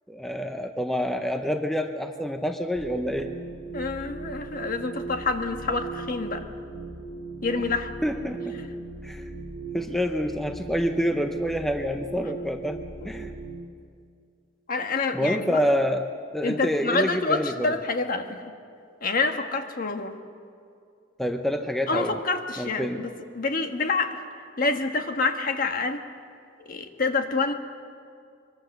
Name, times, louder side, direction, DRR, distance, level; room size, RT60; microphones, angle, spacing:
voice 1, 0.1-3.3 8.0-8.6 9.0-9.3 9.7-13.3 15.1-16.1 16.3-17.7 21.2-22.2 22.6-23.0, equal, ahead, 5 dB, 0.7 m, -27 dB
sound 1, 2.7-13.6, right 3 dB, 55° right, 5.6 m, -38 dB
voice 2, 3.7-6.4 7.4-7.9 13.0-13.1 14.7-15.6 16.4-18.4 19.0-20.2 21.9-24.2 24.6-26.0 26.6-27.5, left 3 dB, 45° left, 6 dB, 1.4 m, -27 dB
23.0 x 22.5 x 6.6 m, 2.3 s
head